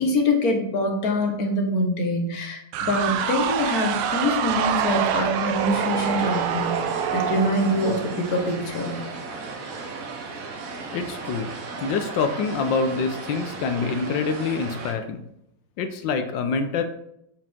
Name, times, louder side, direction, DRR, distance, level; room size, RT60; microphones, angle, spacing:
voice 1, 0.0-6.8 7.1-9.0, left 1 dB, 50° left, 2 dB, 1.5 m, -24 dB
sound 1, 2.7-8.5, right 8 dB, 80° right, 1.5 m, -26 dB
sound 2, 5.5-14.9, right 3 dB, 55° right, 1.0 m, -36 dB
voice 2, 10.9-11.5 11.8-15.2 15.8-16.8, left 5 dB, 75° left, 7 dB, 1.2 m, -26 dB
7.5 x 4.6 x 3.6 m, 0.76 s
omnidirectional pair, 2.4 m